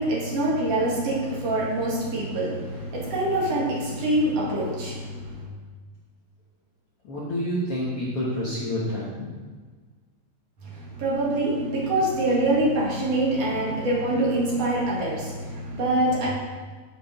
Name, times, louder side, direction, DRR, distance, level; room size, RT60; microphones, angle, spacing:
voice 1, 0.0-5.4 10.6-16.3, right 1 dB, 50° right, -5 dB, 2.6 m, -25 dB
voice 2, 7.0-9.1, equal, 60° left, -7 dB, 1.5 m, -28 dB
7.7 x 6.7 x 5.1 m, 1.5 s
omnidirectional pair, 4.5 m